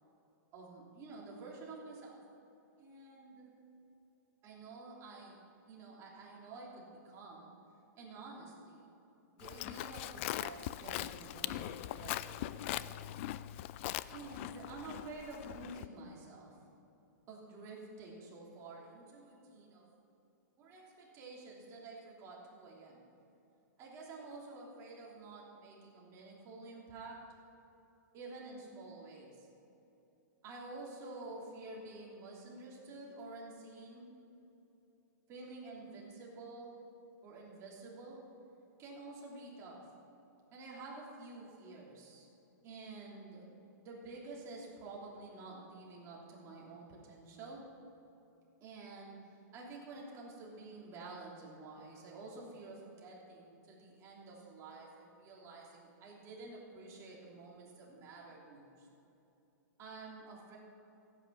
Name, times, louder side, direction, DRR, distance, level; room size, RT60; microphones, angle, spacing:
voice 1, 0.5-2.2 2.8-3.6 4.4-5.4 5.6-7.5 8.0-8.9 9.3-13.0 14.1-16.6 17.3-19.9 20.6-23.0 23.8-27.2 28.1-29.5 30.4-34.2 35.3-36.8 37.2-38.3 38.8-39.9 40.5-42.3 42.6-43.5 43.7-47.7 48.6-49.2 49.5-58.9 59.8-60.6, right 3 dB, 30° right, -4 dB, 3.2 m, -50 dB
Livestock farm animals working animals, 9.4-15.9, left 14 dB, 40° left, 0.3 m, -41 dB
15.0 x 9.1 x 5.8 m, 2.9 s
hypercardioid pair, 145°, 10 cm